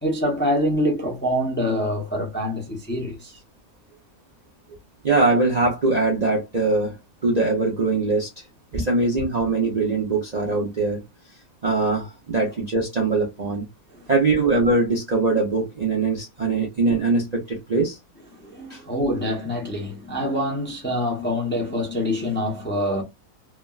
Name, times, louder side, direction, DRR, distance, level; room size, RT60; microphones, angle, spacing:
voice 1, 0.0-3.4 8.7-8.9 13.9-14.1 18.4-23.0, equal, 10° left, 0.6 m, -25 dB
voice 2, 5.0-7.0 7.2-8.4 8.7-11.0 11.6-13.7 14.1-18.0 18.7-18.8, right 3 dB, 40° right, 0.6 m, -22 dB
3.3 x 2.2 x 2.3 m
omnidirectional pair, 1.6 m